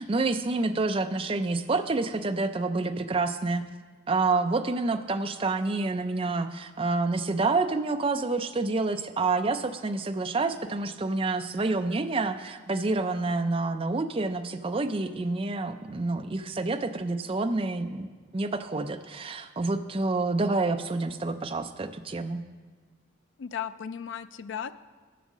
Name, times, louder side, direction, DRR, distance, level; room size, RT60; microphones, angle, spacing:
voice 1, 0.0-3.6 4.1-22.4, right 3 dB, 25° right, 8 dB, 0.4 m, -28 dB
voice 2, 23.4-24.7, left 8 dB, 60° left, 13 dB, 0.4 m, -35 dB
11.0 x 6.2 x 7.2 m, 1.4 s
head